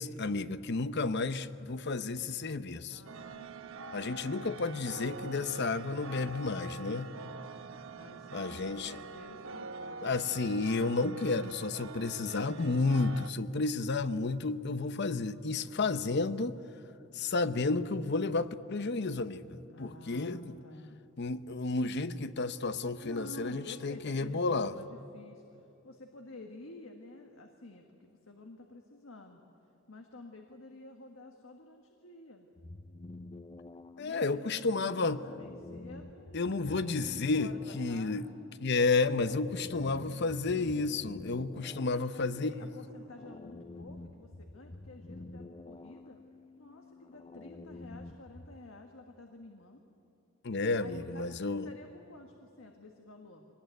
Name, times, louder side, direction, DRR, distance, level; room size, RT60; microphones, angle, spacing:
voice 1, 0.0-3.0 3.9-7.1 8.3-8.9 10.0-16.5 17.1-20.6 21.2-24.7 34.0-35.2 36.3-38.3 38.6-42.5 50.4-51.7, left 3 dB, 60° left, 13 dB, 0.8 m, -31 dB
voice 2, 2.9-3.5 6.0-10.3 15.6-16.7 19.7-21.0 23.0-29.4 29.9-32.5 34.0-38.5 39.6-41.0 41.9-46.2 46.6-49.8 50.8-53.5, left 2 dB, 85° left, 4 dB, 1.6 m, -51 dB
sound 1, 3.1-13.3, right 3 dB, 80° right, 0.9 m, -45 dB
sound 2, 32.5-48.6, left 2 dB, 30° left, 0.6 m, -49 dB
24.0 x 19.0 x 9.2 m, 2.8 s
head